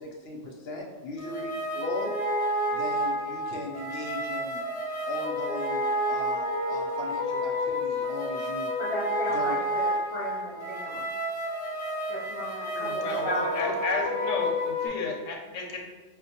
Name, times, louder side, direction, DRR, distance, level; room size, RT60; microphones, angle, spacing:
voice 1, 0.0-2.1 2.7-4.6 5.0-8.7 9.3-9.6 13.0-13.8, left 2 dB, 60° left, -1 dB, 0.8 m, -38 dB
sound 1, 1.2-14.9, equal, 20° left, 0.5 m, -30 dB
voice 2, 8.8-11.1 12.1-13.9, right 1 dB, 40° right, -8 dB, 0.4 m, -35 dB
voice 3, 12.7-15.8, left 3 dB, 85° left, 1 dB, 1.0 m, -33 dB
5.6 x 2.1 x 2.8 m, 1.3 s
omnidirectional pair, 1.3 m